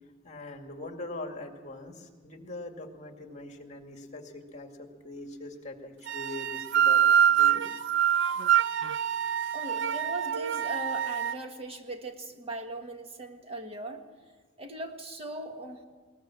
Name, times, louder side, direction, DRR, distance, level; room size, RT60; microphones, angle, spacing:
voice 1, 0.2-7.6, left 2 dB, 35° left, 4 dB, 2.2 m, -42 dB
sound 1, 6.1-11.4, right 9 dB, 65° right, 0.6 m, -25 dB
voice 2, 9.5-14.0 14.6-15.8, right 1 dB, 30° right, 5 dB, 1.6 m, -39 dB
21.0 x 19.5 x 7.5 m, 1.4 s
head